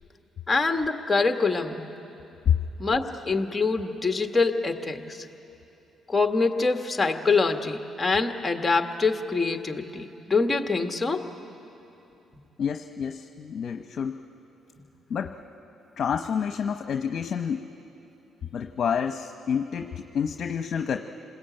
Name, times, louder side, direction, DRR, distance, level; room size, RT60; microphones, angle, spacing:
voice 1, 0.5-1.9 2.8-5.2 6.1-11.3, left 4 dB, 15° left, 5 dB, 1.7 m, -25 dB
voice 2, 12.6-14.2 15.1-15.4 15.9-17.7 18.5-21.0, left 7 dB, 55° left, 6 dB, 1.0 m, -28 dB
28.5 x 20.5 x 9.1 m, 2.9 s
cardioid pair, 90°, 0 cm